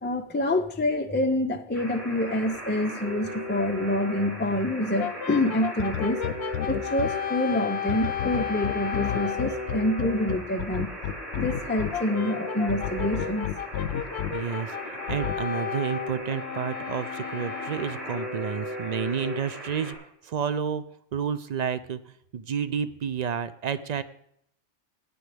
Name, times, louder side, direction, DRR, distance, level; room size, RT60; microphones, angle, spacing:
voice 1, 0.0-6.2 6.7-10.9 11.4-13.5, left 1 dB, 15° left, 5 dB, 0.3 m, -27 dB
Alarm, 1.7-19.9, equal, 30° right, 4.1 m, -37 dB
Brass instrument, 5.0-9.6 11.9-18.3, left 9 dB, 65° left, 0.9 m, -34 dB
sound 1, 5.8-7.1 7.9-11.9 12.7-14.3 15.1-15.3, left 10 dB, 90° left, 0.9 m, -30 dB
voice 2, 14.3-20.0 20.2-20.8 21.1-24.0, right 7 dB, 70° right, 14 dB, 0.4 m, -30 dB
16.0 x 9.3 x 3.4 m, 0.72 s
omnidirectional pair, 1.2 m